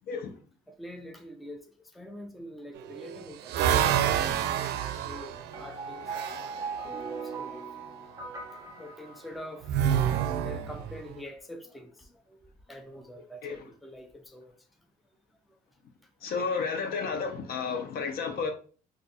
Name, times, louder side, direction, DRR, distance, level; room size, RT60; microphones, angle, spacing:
voice 1, 0.7-3.9 4.9-7.6 8.8-9.7 10.4-14.5 15.5-15.6, left 1 dB, ahead, 0.4 m, -45 dB
sound 1, 2.7-6.6 9.6-11.1, right 9 dB, 75° right, 0.4 m, -28 dB
sound 2, 5.5-9.8, right 4 dB, 20° right, 0.7 m, -39 dB
voice 2, 16.2-18.5, left 5 dB, 65° left, 0.7 m, -31 dB
2.5 x 2.4 x 4.0 m
cardioid pair, 110°, 17 cm